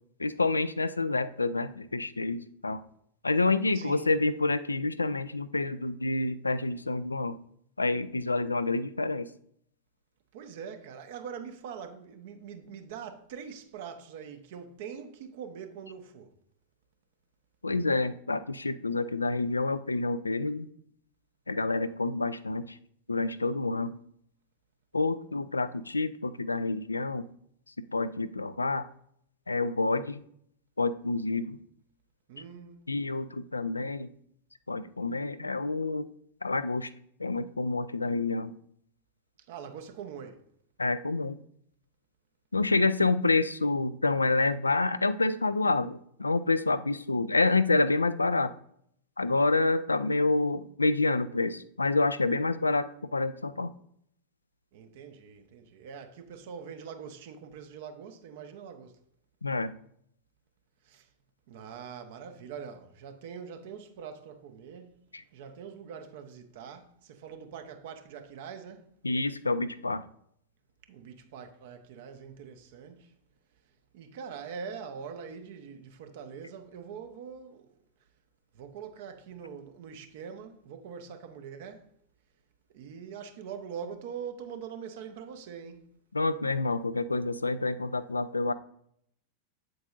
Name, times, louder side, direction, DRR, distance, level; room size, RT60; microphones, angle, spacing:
voice 1, 0.2-2.8 3.2-7.4 7.8-9.3 17.6-20.7 21.5-22.6 23.1-23.9 24.9-27.3 27.9-28.9 29.5-30.2 30.8-31.6 32.9-34.1 34.7-36.1 36.4-36.9 37.2-38.5 40.8-41.4 42.5-48.5 49.2-53.7 59.4-59.7 65.1-65.2 69.0-70.0 86.1-88.5, left 3 dB, 80° left, 0.3 m, -28 dB
voice 2, 3.7-4.2 10.3-16.3 32.3-33.0 39.5-40.5 54.7-59.0 60.8-61.1 61.5-65.0 65.3-68.9 70.9-73.1 73.9-77.7 78.5-81.9 82.7-85.9, right 7 dB, 50° right, 0.9 m, -43 dB
8.0 x 7.7 x 2.5 m
figure-of-eight pair, 90°, 0 cm